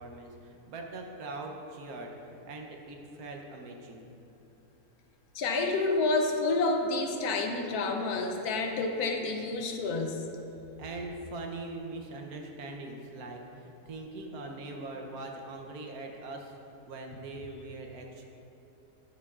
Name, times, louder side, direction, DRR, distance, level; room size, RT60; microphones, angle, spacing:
voice 1, 0.0-4.0 10.8-16.6 16.9-18.3, right 2 dB, 70° right, 1 dB, 1.2 m, -42 dB
voice 2, 5.3-10.2, left 3 dB, 75° left, 3 dB, 1.2 m, -29 dB
11.0 x 6.9 x 2.4 m, 2.8 s
omnidirectional pair, 1.7 m